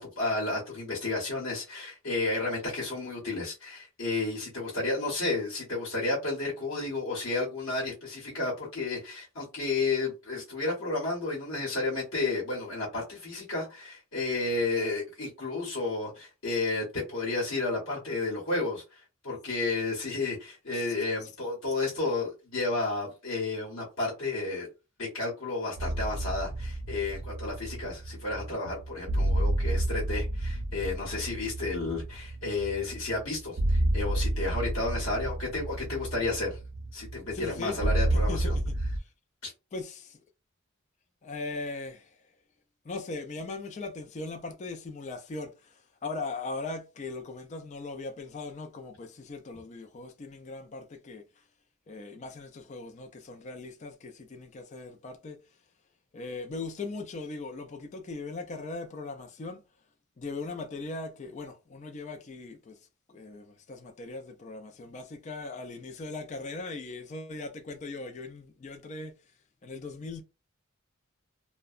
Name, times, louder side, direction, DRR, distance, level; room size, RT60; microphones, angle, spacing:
voice 1, 0.0-24.7 25.0-36.6 36.9-38.6 39.4-39.5, left 3 dB, 70° left, 0.9 m, -32 dB
sound 1, 25.8-39.0, right 1 dB, 85° right, 0.5 m, -30 dB
voice 2, 37.3-37.8 38.1-38.6 39.7-40.2 41.2-42.2 42.8-51.2 51.9-55.4 56.1-59.6 60.2-62.8 63.1-69.1 69.6-70.2, left 3 dB, 35° left, 0.4 m, -39 dB
2.7 x 2.1 x 2.4 m
head